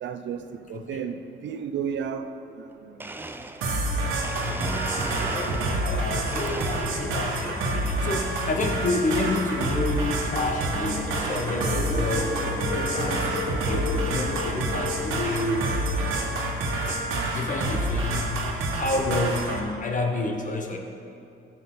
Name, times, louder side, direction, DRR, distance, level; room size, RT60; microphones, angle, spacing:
voice 1, 0.0-2.3 2.6-3.1 7.1-7.2 8.0-8.1, right 7 dB, 65° right, 8 dB, 0.6 m, -33 dB
Domestic sounds home sounds, 2.7-2.8 3.0-5.9 6.3-7.3 7.8-8.3 9.3-9.6 10.2-10.3 11.1-11.2 11.5-11.8 12.2-12.3 12.5-12.6 13.1-13.2 14.5-14.6 15.4-15.5 16.2-17.1, right 2 dB, 10° right, 0.4 m, -39 dB
sound 1, 3.6-19.6, right 2 dB, 90° right, 1.4 m, -28 dB
sound 2, 3.9-17.7, left 4 dB, 20° left, 0.8 m, -37 dB
voice 2, 4.4-4.7 5.0-12.4 12.7-13.4 13.6-15.7 17.2-20.8, left 2 dB, 40° left, 2 dB, 1.2 m, -29 dB
14.0 x 5.7 x 3.8 m, 2.6 s
cardioid pair, 90°, 20 cm